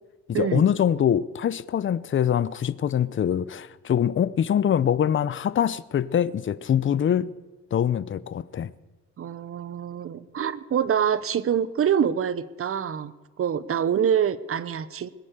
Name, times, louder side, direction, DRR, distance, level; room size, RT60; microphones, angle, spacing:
voice 1, 0.3-7.3 7.7-8.7, left 9 dB, 40° left, 0.7 m, -24 dB
voice 2, 9.2-15.1, right 8 dB, 45° right, 0.9 m, -25 dB
21.5 x 9.1 x 6.8 m
cardioid pair, 90°, 30 cm